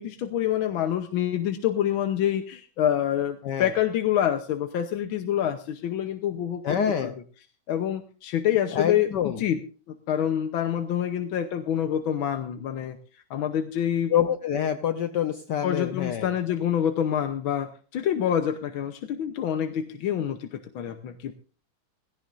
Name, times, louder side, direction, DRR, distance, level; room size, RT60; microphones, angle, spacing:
voice 1, 0.0-6.8 7.0-7.1 7.7-9.6 9.9-13.0 13.3-14.1 15.6-21.3, left 10 dB, 80° left, 7 dB, 1.7 m, -27 dB
voice 2, 6.6-7.1 8.7-9.4 14.1-16.3, left 9 dB, 65° left, 8 dB, 1.3 m, -26 dB
17.0 x 17.0 x 2.6 m, 0.38 s
omnidirectional pair, 2.2 m